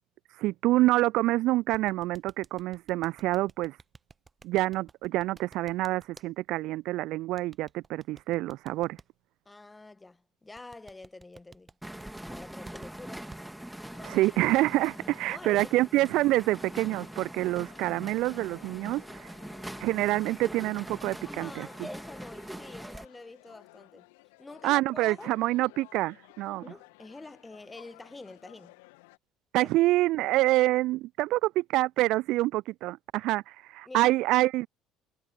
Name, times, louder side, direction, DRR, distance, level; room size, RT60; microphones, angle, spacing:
voice 1, 0.4-3.8 4.4-9.0 14.0-19.3 19.8-21.7 24.6-26.6 29.5-34.7, right 18 dB, 55° right, 0.5 m, -27 dB
sound 1, 1.7-6.3 7.4-9.0 10.6-13.4, right 4 dB, 25° right, 1.2 m, -51 dB
voice 2, 9.4-11.8 12.2-13.3 15.3-15.7 21.2-24.1 24.4-25.4 26.6-28.8 29.6-29.7 33.8-34.1, left 2 dB, 15° left, 1.6 m, -47 dB
sound 2, 11.8-23.1, right 1 dB, 5° right, 3.4 m, -43 dB
sound 3, 13.9-29.2, left 26 dB, 65° left, 2.6 m, -57 dB
figure-of-eight pair, 55°, 0 cm